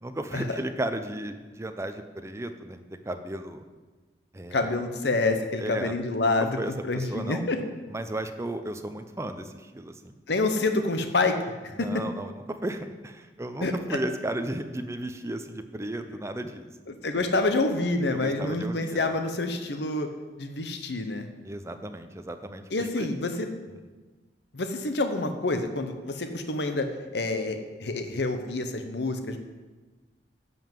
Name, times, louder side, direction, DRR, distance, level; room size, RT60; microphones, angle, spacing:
voice 1, 0.0-3.6 4.3-4.7 5.6-5.9 6.6-7.4 7.9-10.1 11.8-16.7 18.1-19.1 21.4-23.1 23.7-23.8, right 1 dB, 15° right, 8 dB, 0.6 m, -34 dB
voice 2, 4.5-7.6 10.3-11.4 11.8-11.9 13.6-14.0 16.9-20.1 20.4-21.3 22.7-23.5 24.5-29.4, left 2 dB, 65° left, 7 dB, 0.9 m, -27 dB
10.5 x 5.6 x 7.6 m, 1.3 s
head